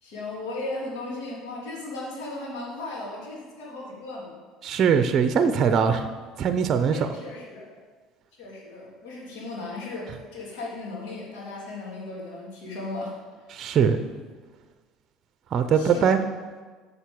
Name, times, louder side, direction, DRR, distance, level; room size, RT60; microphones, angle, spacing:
voice 1, 0.0-4.4 6.9-7.7 8.4-13.2 15.7-16.1, left 2 dB, 80° left, -4 dB, 3.1 m, -36 dB
voice 2, 4.6-6.1 6.4-7.1 13.5-14.0 15.5-16.2, right 7 dB, 45° right, 9 dB, 0.6 m, -21 dB
7.2 x 6.6 x 7.1 m, 1.4 s
supercardioid pair, 90°, 0 cm